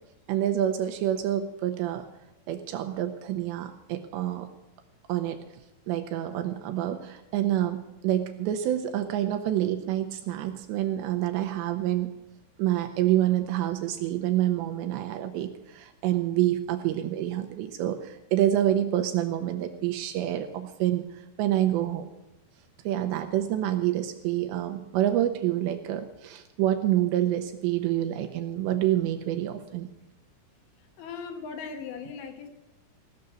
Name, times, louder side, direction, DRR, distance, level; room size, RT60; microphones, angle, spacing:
voice 1, 0.3-2.1 2.5-4.5 5.1-5.4 5.9-12.1 12.6-22.1 22.8-29.9, right 12 dB, 80° right, 6 dB, 2.7 m, -27 dB
voice 2, 31.0-32.5, left 5 dB, 75° left, 5 dB, 3.4 m, -38 dB
16.0 x 6.7 x 8.2 m, 0.99 s
omnidirectional pair, 5.5 m